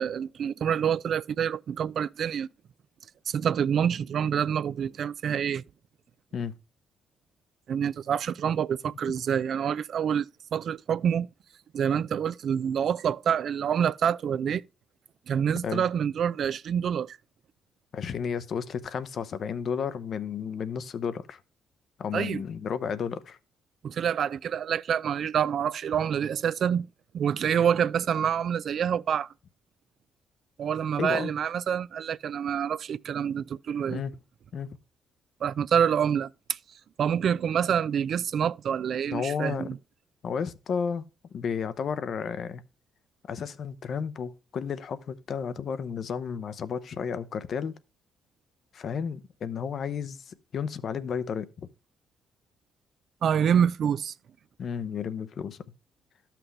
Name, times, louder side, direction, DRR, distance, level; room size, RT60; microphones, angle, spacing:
voice 1, 0.0-2.5 3.3-5.6 7.7-11.3 11.7-14.6 15.3-17.2 22.1-22.4 23.8-26.9 27.1-29.3 30.6-34.0 35.4-36.6 37.0-39.8 53.2-54.1, right 8 dB, 60° right, 0.3 m, -27 dB
voice 2, 17.9-21.4 22.0-23.4 31.0-31.3 33.9-34.2 34.5-34.7 39.1-39.7 40.2-41.1 41.3-42.6 43.3-47.8 48.7-51.5 54.6-55.6, left 6 dB, 60° left, 0.7 m, -32 dB
12.5 x 5.9 x 3.3 m
cardioid pair, 90°, 0 cm